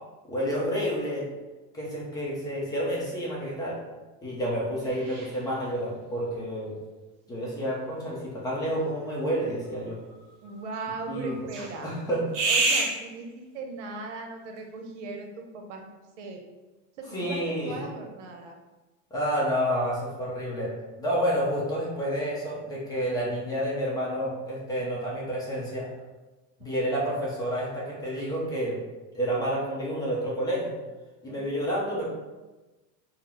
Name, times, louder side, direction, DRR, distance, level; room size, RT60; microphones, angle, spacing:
voice 1, 0.3-1.3 1.7-3.8 4.2-6.7 7.3-10.0 11.1-11.5 11.8-12.2 17.1-17.8 19.1-20.7 21.0-25.9 26.6-28.8 29.1-30.7 31.2-32.1, equal, 10° left, -5 dB, 0.5 m, -29 dB
sound 1, 4.8-5.6 8.4-8.5 9.0-9.1 9.3-12.0 12.3-13.3, right 3 dB, 60° right, 1.0 m, -30 dB
voice 2, 10.4-11.9 12.5-15.9 16.2-16.4 17.0-18.6 26.6-26.7 31.3-31.4, right 3 dB, 85° right, 3 dB, 0.8 m, -38 dB
3.9 x 2.0 x 4.2 m, 1.2 s
supercardioid pair, 165°, 35 cm